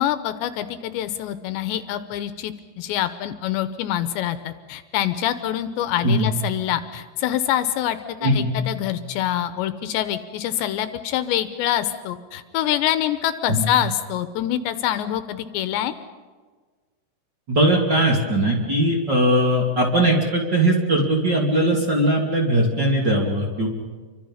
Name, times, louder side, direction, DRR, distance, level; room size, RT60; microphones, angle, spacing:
voice 1, 0.0-15.9, left 11 dB, 80° left, 11 dB, 3.0 m, -25 dB
voice 2, 17.5-23.7, right 1 dB, 30° right, -1 dB, 2.8 m, -20 dB
29.5 x 24.5 x 5.7 m, 1.4 s
omnidirectional pair, 5.3 m